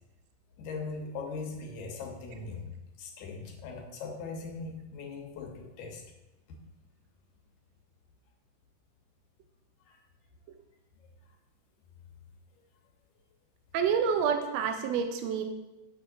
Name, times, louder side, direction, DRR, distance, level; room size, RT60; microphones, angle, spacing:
voice 1, 0.6-6.0 9.9-10.0, left 4 dB, 75° left, 2 dB, 2.2 m, -40 dB
voice 2, 13.7-15.4, right 7 dB, 85° right, 5 dB, 1.5 m, -28 dB
6.6 x 6.3 x 2.5 m, 1.0 s
omnidirectional pair, 3.5 m